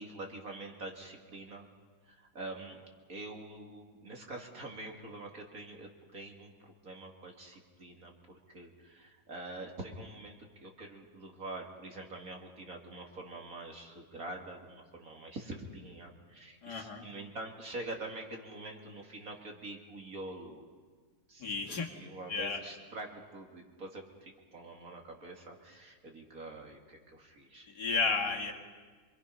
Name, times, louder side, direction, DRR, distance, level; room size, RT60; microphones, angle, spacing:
voice 1, 0.0-1.7 2.1-20.7 21.3-27.7, right 2 dB, 50° right, 1 dB, 2.6 m, -45 dB
voice 2, 16.6-17.0 21.4-21.9 22.3-22.6 27.7-28.5, left 4 dB, 60° left, 0 dB, 2.6 m, -32 dB
27.0 x 22.5 x 5.7 m, 1.5 s
omnidirectional pair, 2.0 m